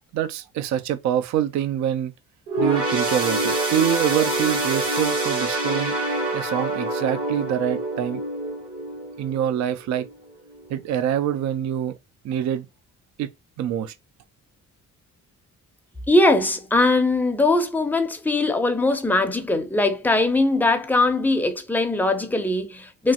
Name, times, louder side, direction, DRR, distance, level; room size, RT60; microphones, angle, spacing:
voice 1, 0.1-2.1 2.6-5.9 6.3-8.2 9.2-10.1 10.7-11.9 12.2-12.7 13.2-13.3 13.6-13.9, right 10 dB, 65° right, 0.4 m, -25 dB
sound 1, 2.5-10.1 10.6-10.7 11.6-11.7, right 2 dB, 50° right, 1.1 m, -26 dB
voice 2, 16.1-23.1, left 2 dB, 5° left, 0.5 m, -21 dB
3.0 x 2.4 x 2.8 m
cardioid pair, 90°, 30 cm